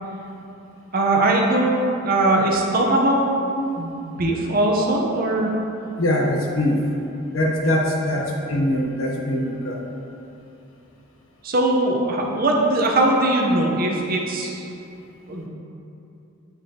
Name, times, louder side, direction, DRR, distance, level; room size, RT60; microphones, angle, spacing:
voice 1, 0.9-1.7 2.0-3.2 3.8-5.5 11.4-14.7 15.3-15.5, right 2 dB, 45° right, -1 dB, 0.7 m, -20 dB
voice 2, 6.0-6.8 7.3-9.8, left 1 dB, 75° left, -1 dB, 1.0 m, -22 dB
7.7 x 5.7 x 2.8 m, 2.8 s
head